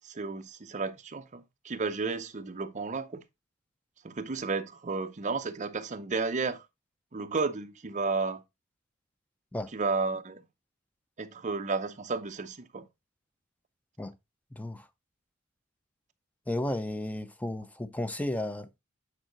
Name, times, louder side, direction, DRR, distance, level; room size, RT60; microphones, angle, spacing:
voice 1, 0.0-3.2 4.0-6.6 7.1-8.4 9.7-10.4 11.2-12.9, right 4 dB, 35° right, 0.6 m, -32 dB
voice 2, 16.5-18.8, left 1 dB, 5° left, 0.5 m, -33 dB
8.9 x 4.7 x 3.0 m
head